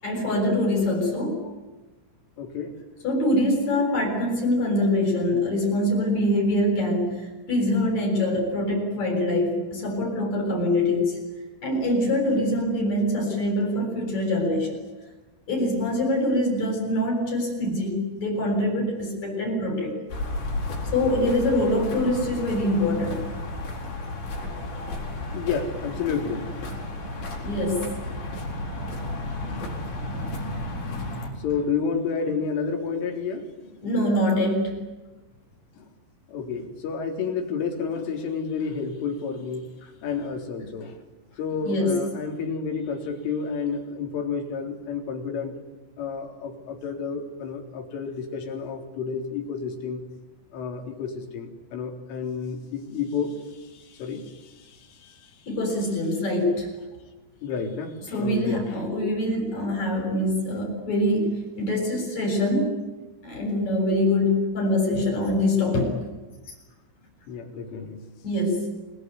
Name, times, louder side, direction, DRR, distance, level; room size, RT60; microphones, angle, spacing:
voice 1, 0.0-1.4 3.0-11.2 11.6-14.8 15.5-20.0 20.9-23.3 27.4-27.9 33.8-34.8 41.6-41.9 55.5-56.7 58.1-62.8 63.2-66.0 68.2-68.7, left 1 dB, 35° left, -1 dB, 8.4 m, -24 dB
voice 2, 2.4-2.8 25.3-26.5 28.8-29.0 29.5-29.8 30.9-33.7 36.3-39.7 40.0-41.0 41.4-45.5 46.0-50.0 50.5-55.4 57.4-58.7 67.3-68.0, left 5 dB, 80° left, 4 dB, 6.2 m, -31 dB
sound 1, 20.1-31.3, left 2 dB, 65° left, 9.4 m, -33 dB
28.5 x 22.0 x 9.6 m, 1.2 s
omnidirectional pair, 5.6 m